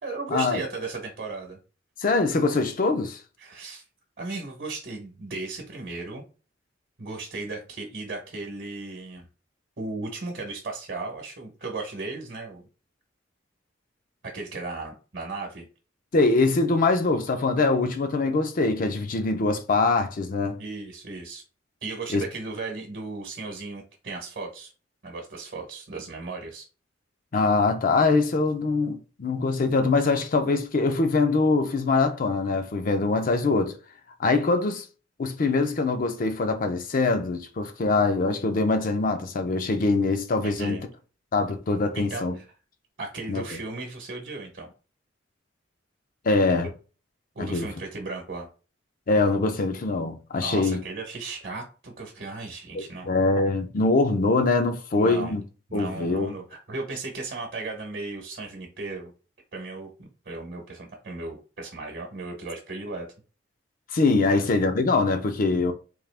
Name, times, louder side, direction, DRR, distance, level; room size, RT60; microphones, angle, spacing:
voice 1, 0.0-1.6 3.4-3.8 4.2-6.2 7.0-9.2 9.8-12.7 14.2-15.7 20.6-21.4 21.8-24.7 25.0-26.7 40.4-40.9 41.9-42.4 43.0-44.7 47.3-48.5 50.4-53.1 55.0-55.4 55.7-59.1 59.5-63.1 64.3-64.4, right 3 dB, 55° right, 0.9 m, -36 dB
voice 2, 2.0-3.2 16.1-20.6 22.1-22.2 27.3-33.8 34.2-34.8 35.2-40.8 41.3-42.4 43.3-43.4 46.2-46.7 47.4-47.7 49.1-50.8 52.7-55.4 55.7-56.4 63.9-65.7, left 3 dB, 45° left, 0.5 m, -23 dB
3.7 x 2.8 x 3.3 m
head